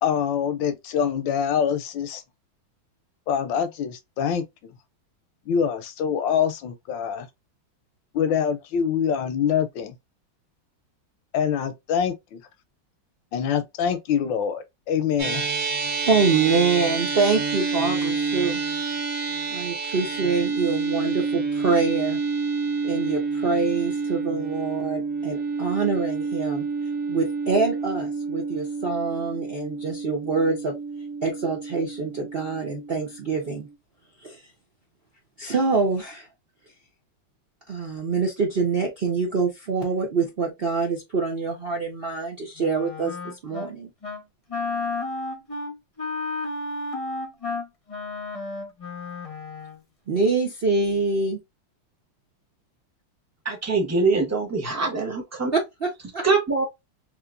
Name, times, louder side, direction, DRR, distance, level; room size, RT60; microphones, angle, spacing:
voice 1, 0.0-2.2 3.3-4.7 5.5-7.3 8.1-9.9 11.3-12.4 13.3-15.4, left 8 dB, 75° left, 1.2 m, -25 dB
sound 1, 15.2-33.7, right 4 dB, 50° right, 1.1 m, -28 dB
voice 2, 16.0-18.6 19.5-22.2 22.8-26.6 27.1-30.7 31.2-33.7 34.2-34.4 35.4-36.3 37.7-43.9 50.1-51.4 55.5-56.2, right 4 dB, 75° right, 0.5 m, -25 dB
Wind instrument woodwind instrument, 42.6-43.7 44.0-44.2 44.5-49.8, left 3 dB, 30° left, 0.6 m, -32 dB
voice 3, 53.4-55.5 56.2-56.6, right 3 dB, 20° right, 0.4 m, -23 dB
3.7 x 3.1 x 2.5 m
omnidirectional pair, 2.3 m